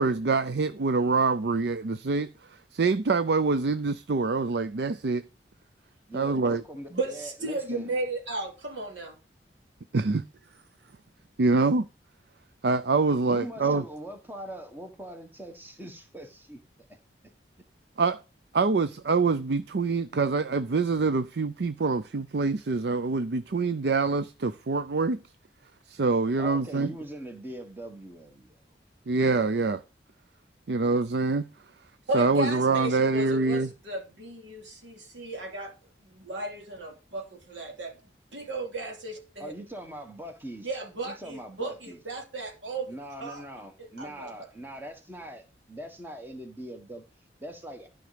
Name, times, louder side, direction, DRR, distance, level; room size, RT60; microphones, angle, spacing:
voice 1, 0.0-5.2 6.1-6.6 9.9-10.3 11.4-11.9 12.6-13.8 18.0-18.2 18.5-25.2 25.9-26.9 29.1-29.8 30.7-31.5 32.1-33.7, right 4 dB, 65° right, 0.5 m, -25 dB
voice 2, 6.1-8.0 13.3-17.0 26.4-28.8 39.4-40.7 41.0-42.0 42.9-47.9, right 1 dB, 10° right, 1.4 m, -42 dB
voice 3, 6.9-9.2 32.1-35.7 36.0-38.0 38.3-39.5 40.6-42.9 43.2-43.4 44.0-44.3, right 2 dB, 90° right, 2.9 m, -34 dB
12.5 x 5.2 x 5.0 m
head